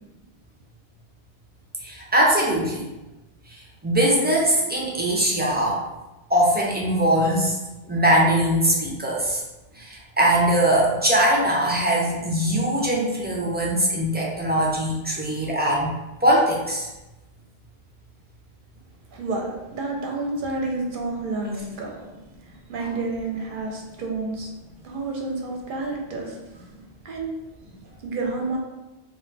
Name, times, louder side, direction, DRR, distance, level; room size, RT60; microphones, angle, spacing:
voice 1, 1.8-2.8 3.8-5.8 6.3-7.6 7.9-9.4 9.8-15.9 16.2-16.9, right 1 dB, 15° right, -4 dB, 0.3 m, -21 dB
voice 2, 19.1-21.9 22.7-24.5 24.8-26.4 27.0-27.3 28.0-28.6, right 3 dB, 65° right, 0 dB, 0.7 m, -29 dB
2.4 x 2.2 x 3.9 m, 1.0 s
omnidirectional pair, 1.0 m